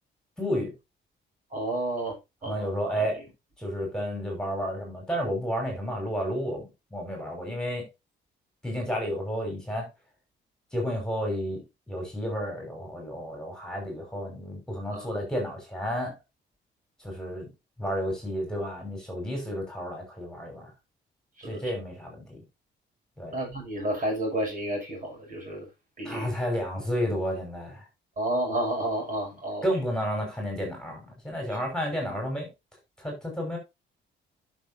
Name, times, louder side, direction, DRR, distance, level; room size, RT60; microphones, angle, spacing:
voice 1, 0.4-0.7 2.4-3.2 3.6-6.7 6.9-7.8 8.6-9.9 10.7-11.6 11.9-16.2 17.0-17.5 17.8-20.7 21.5-22.4 23.2-23.4 26.0-27.8 29.6-32.5 33.0-33.6, equal, 5° left, 5.5 m, -31 dB
voice 2, 1.5-2.2 2.4-2.7 3.0-3.1 14.9-15.1 21.4-21.6 23.3-25.7 26.0-26.3 28.2-29.6, right 1 dB, 40° right, 6.6 m, -30 dB
11.5 x 6.4 x 2.8 m
cardioid pair, 90°, 20 cm